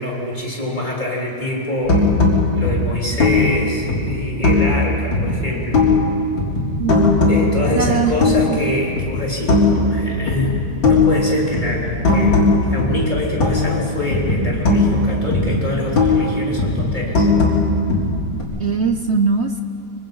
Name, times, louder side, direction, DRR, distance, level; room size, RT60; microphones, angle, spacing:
voice 1, 0.0-2.2 2.5-5.8 7.3-17.3, left 1 dB, 25° left, -3 dB, 3.9 m, -25 dB
sound 1, 1.9-4.8 5.1-6.1 6.4-8.6 9.0-10.0 10.3-13.9 14.1-16.3 16.6-18.4, left 3 dB, 80° left, 4.3 m, -18 dB
voice 2, 7.8-8.6 18.6-19.6, right 5 dB, 55° right, 7 dB, 0.7 m, -20 dB
25.0 x 24.0 x 5.5 m, 2.5 s
omnidirectional pair, 2.0 m